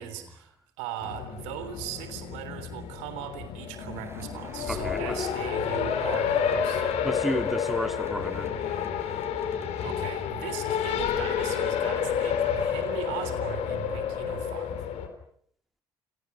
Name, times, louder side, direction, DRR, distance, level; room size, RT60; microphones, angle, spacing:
voice 1, 0.0-6.9 9.8-14.9, right 11 dB, 65° right, 10 dB, 3.5 m, -39 dB
Race car auto racing, 1.0-15.1, left 8 dB, 55° left, 4.0 m, -30 dB
sound 1, 3.8-10.0, right 2 dB, 20° right, 6.7 m, -47 dB
voice 2, 4.7-5.3 7.0-8.5, equal, ahead, 7 dB, 3.2 m, -32 dB
30.0 x 29.0 x 5.8 m, 0.62 s
figure-of-eight pair, 50°, 13 cm